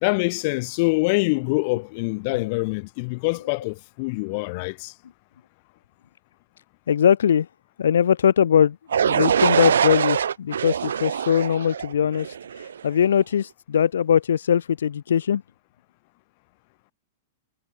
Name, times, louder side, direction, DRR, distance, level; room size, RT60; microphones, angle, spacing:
voice 1, 0.0-4.9, left 28 dB, 50° left, 1.7 m, -25 dB
voice 2, 6.9-7.5 7.8-15.4, left 8 dB, 85° left, 0.6 m, -21 dB
sound 1, 8.9-12.8, right 8 dB, 90° right, 0.9 m, -23 dB
hypercardioid pair, 130°, 0 cm